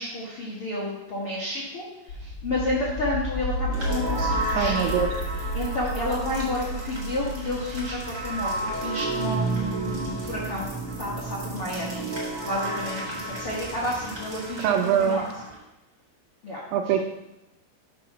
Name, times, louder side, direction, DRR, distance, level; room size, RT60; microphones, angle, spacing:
voice 1, 0.0-5.0 5.4-10.7 11.0-12.0 12.4-15.5 16.4-16.9, left 1 dB, 85° left, -6 dB, 1.2 m, -31 dB
sound 1, 2.1-12.8, equal, 45° left, 2.0 m, -34 dB
sound 2, 3.7-15.6, right 2 dB, 65° right, 0.7 m, -32 dB
voice 2, 4.5-5.1 14.6-15.2 16.7-17.0, right 8 dB, 80° right, 5 dB, 2.5 m, -23 dB
6.2 x 4.6 x 5.9 m, 0.92 s
omnidirectional pair, 5.0 m